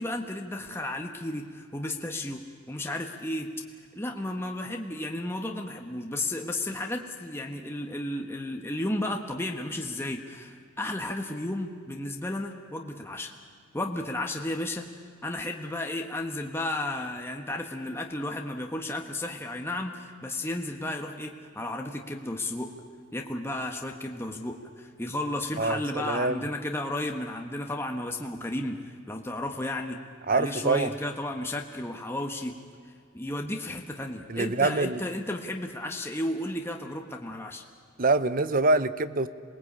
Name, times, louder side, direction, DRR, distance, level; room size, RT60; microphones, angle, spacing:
voice 1, 0.0-2.4 2.7-3.5 3.9-13.3 13.7-14.8 15.2-22.7 23.1-30.0 30.3-32.5 33.1-37.6, left 1 dB, 10° left, 2 dB, 1.3 m, -33 dB
voice 2, 25.6-26.4 30.3-30.9 34.3-35.0 38.0-39.3, right 3 dB, 45° right, 14 dB, 0.8 m, -25 dB
27.0 x 20.0 x 8.7 m, 2.1 s
head